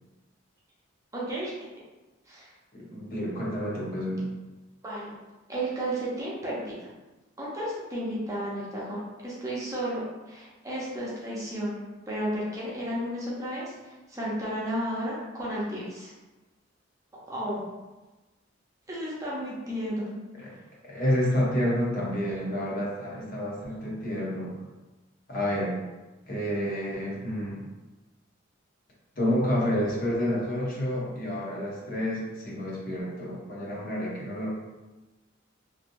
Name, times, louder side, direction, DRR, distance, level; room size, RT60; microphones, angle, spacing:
voice 1, 1.1-1.5 2.3-2.5 4.8-5.1 5.5-6.9 7.4-11.8 12.1-16.1 17.3-17.7 18.9-20.1, right 1 dB, 15° right, -6 dB, 0.7 m, -33 dB
voice 2, 2.7-4.3 20.4-20.6 20.8-24.5 25.3-25.8 26.3-27.6 29.2-34.5, equal, 50° left, -5 dB, 0.8 m, -29 dB
3.1 x 2.6 x 2.6 m, 1.1 s
head